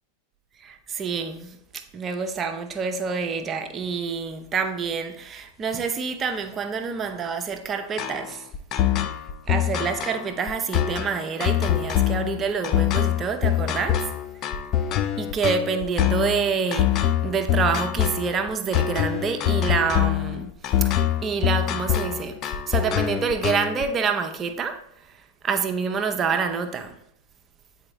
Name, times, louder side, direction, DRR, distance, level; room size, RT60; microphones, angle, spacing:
voice 1, 0.6-8.4 9.5-14.0 15.2-20.5 20.8-24.8 25.4-26.9, right 5 dB, 25° right, 0.7 m, -27 dB
sound 1, 8.0-23.8, left 11 dB, 35° left, 0.4 m, -24 dB
8.6 x 4.2 x 3.0 m
figure-of-eight pair, 90°, 0 cm